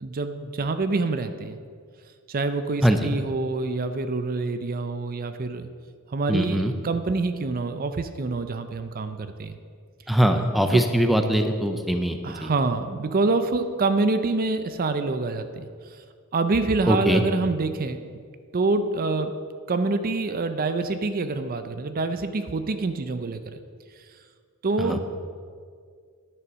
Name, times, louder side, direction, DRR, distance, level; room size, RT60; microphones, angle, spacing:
voice 1, 0.0-1.6 2.3-5.7 6.1-9.6 10.7-10.9 12.2-15.7 16.3-18.0 18.5-19.3 19.7-23.6 24.6-25.0, right 3 dB, 40° right, 9 dB, 0.5 m, -26 dB
voice 2, 6.3-6.7 10.1-12.5 16.9-17.2 24.8-25.0, equal, ahead, 6 dB, 0.5 m, -22 dB
10.5 x 6.6 x 6.1 m, 2.1 s
head